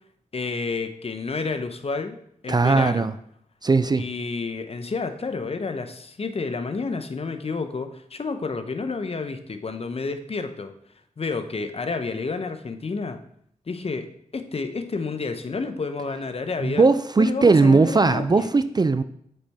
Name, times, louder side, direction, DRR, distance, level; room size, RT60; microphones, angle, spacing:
voice 1, 0.3-2.2 2.4-3.1 4.0-10.7 11.2-13.2 13.7-14.1 14.3-16.9 17.2-18.5, left 4 dB, 45° left, 8 dB, 0.7 m, -30 dB
voice 2, 2.5-3.1 3.6-4.0 16.6-19.0, right 4 dB, 30° right, 12 dB, 0.4 m, -18 dB
7.7 x 4.2 x 3.4 m, 0.69 s
cardioid pair, 50°, 14 cm